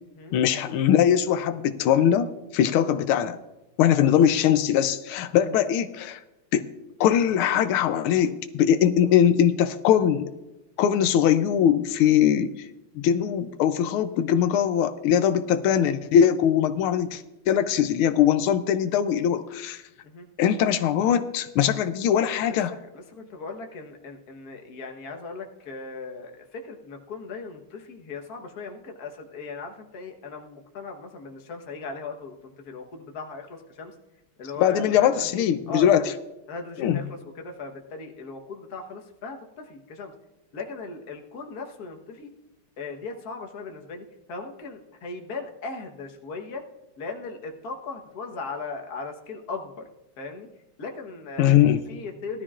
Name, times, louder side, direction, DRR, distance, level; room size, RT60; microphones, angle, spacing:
voice 1, 0.3-3.4 3.8-6.2 6.5-6.7 7.0-10.3 10.8-12.5 13.0-19.8 20.4-22.7 34.6-36.0 36.8-37.0 51.4-51.8, left 9 dB, 90° left, 10 dB, 1.5 m, -21 dB
voice 2, 22.4-33.9 34.4-36.1 36.5-40.1 40.5-42.3 42.8-46.6 47.0-49.8 50.2-50.5 50.8-52.4, left 4 dB, 50° left, 3 dB, 1.6 m, -38 dB
18.5 x 13.0 x 2.5 m, 0.99 s
omnidirectional pair, 2.3 m